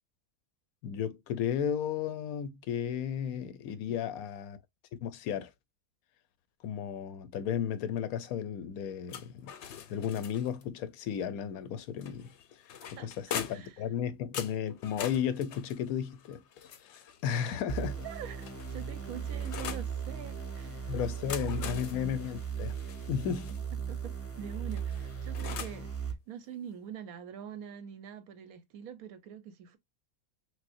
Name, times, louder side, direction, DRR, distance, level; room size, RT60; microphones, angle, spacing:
voice 1, 0.8-4.6 5.0-5.5 6.6-9.5 9.9-12.3 13.0-16.4 16.8-18.1 20.9-22.8 23.1-23.5, left 8 dB, 85° left, 1.1 m, -34 dB
sound 1, 9.1-10.7 12.0-13.8 14.3-17.3 18.1-19.9 21.0-23.6 24.7-25.9, left 8 dB, 60° left, 0.8 m, -43 dB
voice 2, 13.5-13.8 17.3-17.7 18.0-20.9 21.2-21.8 23.9-29.8, right 9 dB, 80° right, 1.2 m, -45 dB
sound 2, 17.7-26.1, right 7 dB, 15° left, 0.7 m, -37 dB
6.2 x 2.1 x 2.5 m
omnidirectional pair, 1.5 m